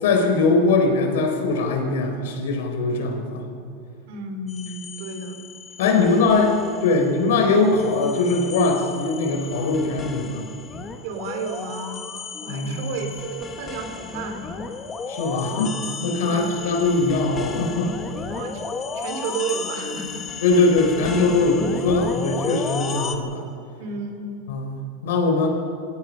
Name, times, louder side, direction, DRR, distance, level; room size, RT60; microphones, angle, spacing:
voice 1, 0.0-3.5 5.8-10.5 12.5-13.0 15.1-17.9 20.4-23.5 24.5-25.5, left 3 dB, 80° left, 3 dB, 4.3 m, -21 dB
voice 2, 4.1-5.4 5.8-6.3 11.0-12.0 12.4-14.5 16.2-16.8 18.3-20.3 20.5-20.7 23.8-24.3, right 4 dB, 50° right, 5 dB, 3.3 m, -32 dB
sound 1, 4.5-7.2 7.5-23.1, left 5 dB, 15° left, 1.1 m, -34 dB
28.5 x 16.5 x 5.6 m, 2.7 s
supercardioid pair, 175°, 0 cm